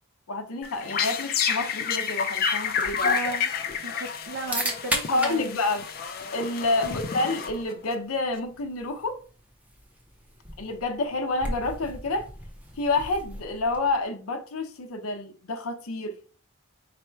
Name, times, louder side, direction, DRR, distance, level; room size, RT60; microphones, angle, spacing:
voice 1, 0.3-3.2 5.1-5.8 6.3-9.2 10.6-12.3 12.8-16.1, left 2 dB, 75° left, 0.7 m, -28 dB
sound 1, 0.6-7.9, left 6 dB, 40° left, 0.4 m, -29 dB
sound 2, 2.1-14.0, equal, 5° right, 0.5 m, -38 dB
voice 2, 3.0-3.5 3.8-5.5 6.8-7.0, right 3 dB, 55° right, 0.4 m, -35 dB
4.1 x 2.1 x 4.4 m
head